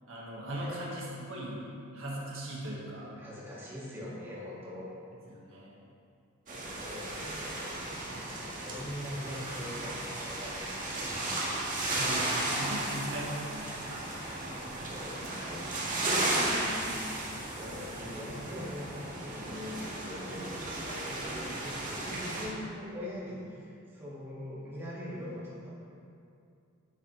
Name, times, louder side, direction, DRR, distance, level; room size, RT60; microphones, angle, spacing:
voice 1, 0.1-1.6 1.9-3.2 5.3-5.8 6.9-7.0 8.1-8.3 11.8-13.8, right 1 dB, 70° right, -5 dB, 1.7 m, -39 dB
voice 2, 3.2-4.9 6.5-7.2 8.3-11.1 14.0-25.8, left 1 dB, 10° right, -8 dB, 2.1 m, -42 dB
sound 1, 6.5-22.5, right 2 dB, 40° right, 1.9 m, -35 dB
9.7 x 9.2 x 3.3 m, 2.5 s
head